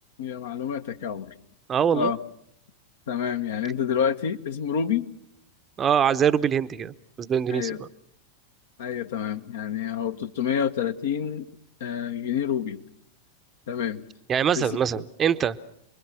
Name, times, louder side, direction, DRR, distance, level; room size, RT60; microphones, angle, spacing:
voice 1, 0.2-1.3 1.9-2.2 3.1-5.1 7.5-7.8 8.8-11.5 11.8-12.8 13.7-14.0 14.6-14.8, left 8 dB, 60° left, 8 dB, 1.3 m, -28 dB
voice 2, 1.7-2.1 5.8-7.9 14.3-15.6, right 8 dB, 25° right, 13 dB, 0.8 m, -23 dB
29.0 x 22.0 x 6.0 m, 0.73 s
figure-of-eight pair, 90°, 0 cm